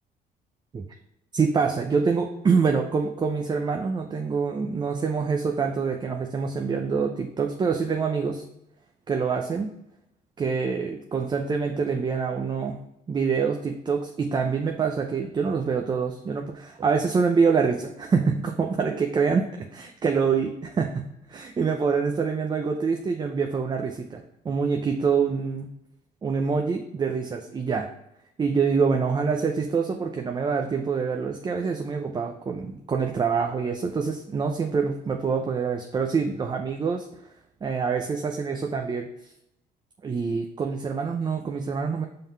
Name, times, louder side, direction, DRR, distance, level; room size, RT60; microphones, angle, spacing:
voice 1, 1.3-8.4 9.1-9.7 10.4-12.8 13.1-25.7 26.2-27.9 28.4-37.1 37.6-39.3 40.0-42.1, right 5 dB, 25° right, 3 dB, 0.6 m, -26 dB
5.2 x 3.8 x 5.4 m, 0.81 s
cardioid pair, 110°, 17 cm